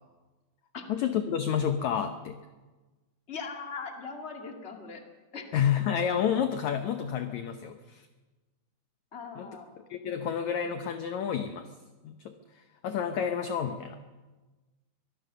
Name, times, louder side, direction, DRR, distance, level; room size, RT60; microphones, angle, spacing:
voice 1, 0.9-2.4 5.5-8.1 9.4-9.5 9.8-11.7 12.0-14.0, left 8 dB, 75° left, 8 dB, 1.7 m, -30 dB
voice 2, 3.3-5.0 5.3-5.5 9.1-9.7, left 5 dB, 20° left, 3 dB, 1.8 m, -40 dB
24.0 x 17.5 x 6.8 m, 1.2 s
omnidirectional pair, 4.4 m